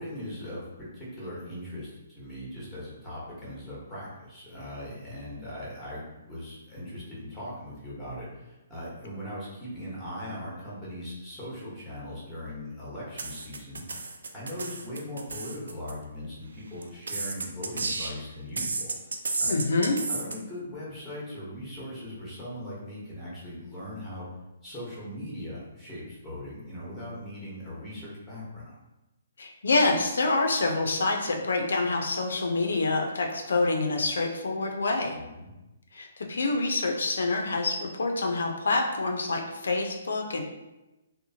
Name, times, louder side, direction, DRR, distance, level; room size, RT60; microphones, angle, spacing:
voice 1, 0.0-13.8 14.3-18.8 19.4-19.5 20.1-24.3 24.6-28.8 35.1-35.5, left 1 dB, ahead, -8 dB, 1.0 m, -39 dB
sound 1, 13.2-15.9 16.8-18.2 18.6-20.3, right 3 dB, 90° right, 0.3 m, -32 dB
voice 2, 19.5-20.0 29.4-35.2 35.9-40.4, left 3 dB, 85° left, 2 dB, 0.4 m, -26 dB
2.8 x 2.0 x 2.7 m, 1.0 s
hypercardioid pair, 155°, 0 cm